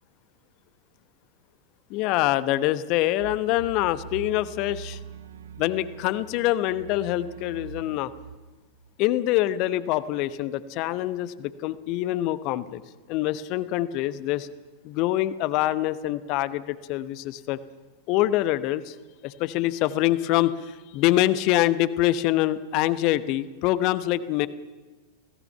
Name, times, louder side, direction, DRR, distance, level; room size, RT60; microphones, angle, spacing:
voice 1, 1.9-5.0 5.6-8.1 9.0-12.8 13.1-14.5 14.8-17.6 18.1-19.0 19.2-24.5, left 15 dB, 40° left, 15 dB, 1.0 m, -25 dB
sound 1, 3.2-8.9, right 7 dB, 70° right, 0.9 m, -42 dB
28.0 x 17.0 x 5.7 m, 1.2 s
figure-of-eight pair, 90°, 0 cm